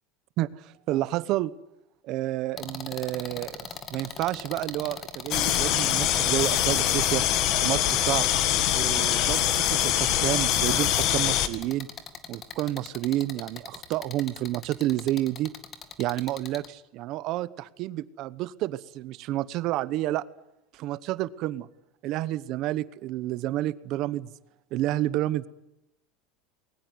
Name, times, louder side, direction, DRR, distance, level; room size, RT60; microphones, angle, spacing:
voice 1, 0.4-1.5 2.0-7.2 7.6-8.3 8.7-11.9 12.3-15.5 16.0-20.2 20.7-21.7 22.0-24.3 24.7-25.5, right 15 dB, 40° right, 18 dB, 0.9 m, -30 dB
sound 1, 2.6-16.7, left 6 dB, 20° left, 2.1 m, -40 dB
sound 2, 5.3-11.5, left 12 dB, 40° left, 1.8 m, -24 dB
21.5 x 19.5 x 9.5 m, 0.86 s
cardioid pair, 170°, 0 cm